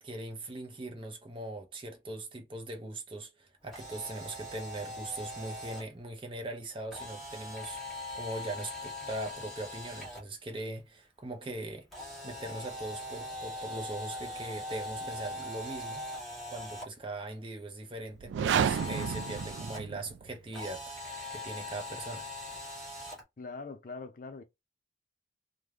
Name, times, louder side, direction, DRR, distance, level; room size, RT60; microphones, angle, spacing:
voice 1, 0.0-16.0 16.5-21.0 21.3-22.3, right 2 dB, 30° right, 0.6 m, -41 dB
Camera, 3.6-5.8 6.9-10.2 11.9-16.8 18.5-19.8 20.5-23.2, left 1 dB, ahead, 1.2 m, -41 dB
sound 1, 18.2-20.3, right 7 dB, 80° right, 0.3 m, -31 dB
voice 2, 23.4-24.4, left 4 dB, 45° left, 0.4 m, -42 dB
3.2 x 2.1 x 2.3 m
head